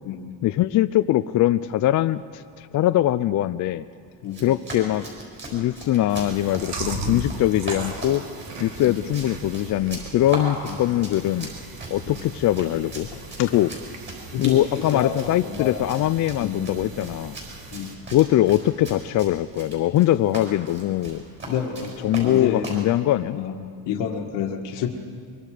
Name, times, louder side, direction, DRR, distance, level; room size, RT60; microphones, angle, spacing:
voice 1, 0.4-3.8 4.4-5.1 5.5-8.3 8.6-11.5 11.9-13.1 13.4-13.7 14.4-17.4 18.1-21.2 22.0-23.4, left 13 dB, 45° left, 11 dB, 0.5 m, -22 dB
Run, 4.2-22.9, right 2 dB, 25° right, 6.7 m, -38 dB
Chewing mastication, 6.1-17.9, right 3 dB, 70° right, 2.9 m, -39 dB
voice 2, 13.1-13.5 14.3-15.9 16.4-16.6 17.7-18.0 21.5-22.7 23.3-23.5 23.8-24.9, left 8 dB, 80° left, 3 dB, 1.7 m, -30 dB
24.5 x 23.5 x 5.0 m, 2.2 s
cardioid pair, 140°, 42 cm